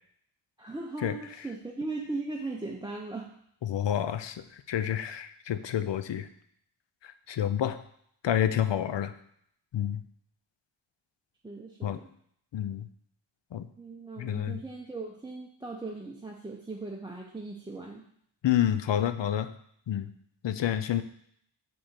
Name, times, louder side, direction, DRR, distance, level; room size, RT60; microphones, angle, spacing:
voice 1, 0.6-3.3 11.4-12.1 13.8-18.0, right 3 dB, 10° right, -2 dB, 0.7 m, -38 dB
voice 2, 3.6-6.3 7.0-7.8 8.2-9.1 9.7-10.0 11.8-12.0 12.5-12.9 13.5-13.7 14.2-14.6 18.4-19.5 19.9-20.1 20.4-21.0, left 10 dB, 60° left, 11 dB, 0.6 m, -29 dB
5.0 x 3.7 x 5.7 m, 0.68 s
cardioid pair, 60°, 50 cm